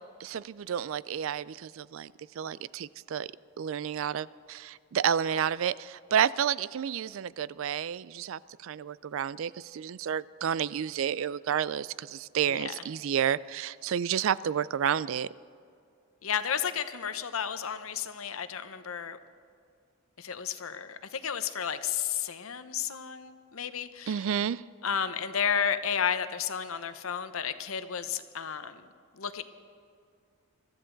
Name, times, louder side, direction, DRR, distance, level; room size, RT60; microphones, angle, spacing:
voice 1, 0.0-3.3 3.6-15.3 24.1-24.6, right 8 dB, 65° right, 0.3 m, -30 dB
voice 2, 12.5-12.8 16.2-19.2 20.2-24.2 24.8-28.8 29.1-29.4, left 7 dB, 75° left, 0.8 m, -32 dB
23.0 x 14.0 x 3.9 m
head